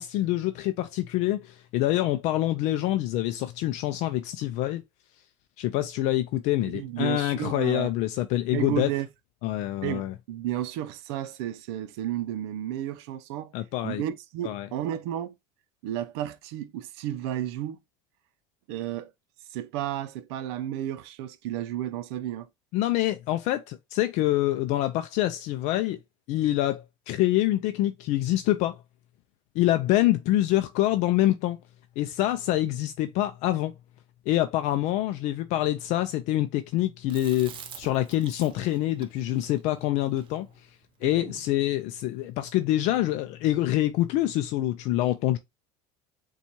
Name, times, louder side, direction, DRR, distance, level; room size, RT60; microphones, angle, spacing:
voice 1, 0.0-4.8 5.6-8.9 9.4-10.1 13.5-14.0 14.4-14.7 22.7-26.0 26.3-28.8 29.6-31.6 32.0-33.7 34.3-40.5 41.0-45.4, left 14 dB, 60° left, 0.4 m, -26 dB
voice 2, 6.6-7.9 8.5-9.1 9.8-13.5 13.8-15.3 15.8-17.8 18.7-19.1 19.5-22.5, right 12 dB, 80° right, 0.5 m, -32 dB
Chewing mastication, 37.1-41.5, right 8 dB, 40° right, 0.6 m, -46 dB
6.9 x 2.3 x 2.9 m
supercardioid pair, 130°, 14 cm